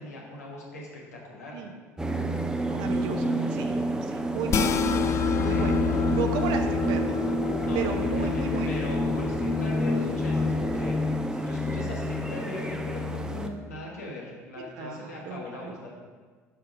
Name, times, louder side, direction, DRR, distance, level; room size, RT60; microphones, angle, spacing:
voice 1, 0.0-1.6 5.4-5.7 7.6-15.9, left 2 dB, 80° left, -3 dB, 1.5 m, -40 dB
sound 1, 2.0-13.5, right 1 dB, 10° right, 0.7 m, -28 dB
voice 2, 2.7-3.7 4.0-4.7 5.4-5.8 6.1-7.1 7.7-8.7 14.7-15.8, right 6 dB, 60° right, 5 dB, 0.8 m, -34 dB
sound 2, 4.5-11.0, left 8 dB, 35° left, 0.5 m, -29 dB
6.7 x 5.8 x 4.9 m, 1.5 s
figure-of-eight pair, 60°, 8 cm